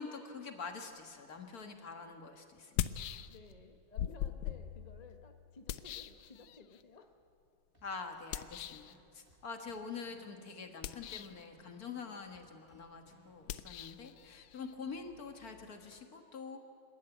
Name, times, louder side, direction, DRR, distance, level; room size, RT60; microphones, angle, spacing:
voice 1, 0.0-2.9 7.8-16.6, left 5 dB, 50° left, 5 dB, 1.9 m, -46 dB
sound 1, 1.6-1.7 2.6-3.6 4.0-6.8 8.3-8.9 10.7-11.5 13.4-16.0, left 11 dB, 90° left, 1.5 m, -41 dB
voice 2, 3.3-7.2, left 3 dB, 30° left, 5 dB, 0.8 m, -56 dB
sound 2, 7.7-13.8, right 2 dB, 25° right, 3.1 m, -67 dB
27.0 x 12.5 x 9.2 m, 2.5 s
omnidirectional pair, 2.2 m